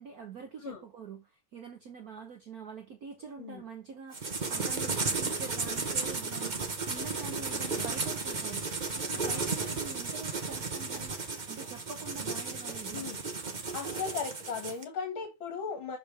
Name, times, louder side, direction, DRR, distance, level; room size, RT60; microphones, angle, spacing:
voice 1, 0.0-11.1 11.5-13.1, right 5 dB, 55° right, 1.3 m, -45 dB
sound 1, 4.1-14.8, right 4 dB, 35° right, 0.8 m, -34 dB
voice 2, 9.1-9.6 12.9-13.2 13.7-16.0, left 6 dB, 65° left, 2.4 m, -37 dB
6.6 x 5.5 x 3.4 m
omnidirectional pair, 2.4 m